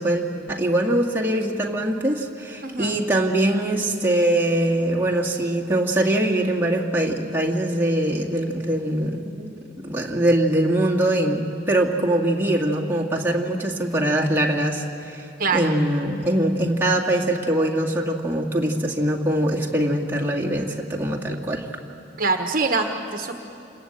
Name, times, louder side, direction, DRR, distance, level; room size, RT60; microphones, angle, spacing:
voice 1, 0.0-9.5 9.8-15.3 15.5-21.7, right 1 dB, 10° right, -3 dB, 2.1 m, -22 dB
voice 2, 2.6-2.9 15.4-15.7 22.2-23.3, right 4 dB, 45° right, 5 dB, 1.2 m, -24 dB
28.0 x 21.5 x 8.9 m, 2.7 s
head